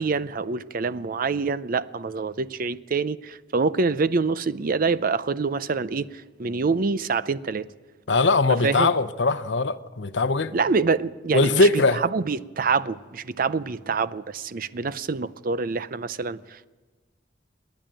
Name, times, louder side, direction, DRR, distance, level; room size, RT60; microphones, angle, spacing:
voice 1, 0.0-7.7 8.5-8.9 10.5-16.7, right 4 dB, 50° right, 0.6 m, -26 dB
voice 2, 8.1-10.6 11.3-12.0, left 3 dB, 80° left, 0.8 m, -21 dB
28.0 x 10.5 x 8.9 m
head